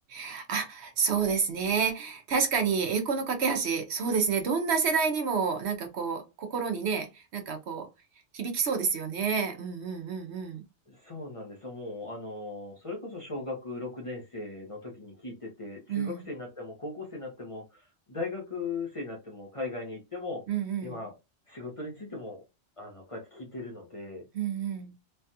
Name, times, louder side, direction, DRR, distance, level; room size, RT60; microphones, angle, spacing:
voice 1, 0.1-7.9 8.3-10.6 15.9-16.3 20.5-21.0 24.3-24.9, right 6 dB, 65° right, 0.9 m, -29 dB
voice 2, 10.9-20.4 20.8-21.1 21.5-22.4 22.8-24.2, left 3 dB, 30° left, 0.8 m, -38 dB
3.2 x 2.3 x 2.7 m
omnidirectional pair, 1.2 m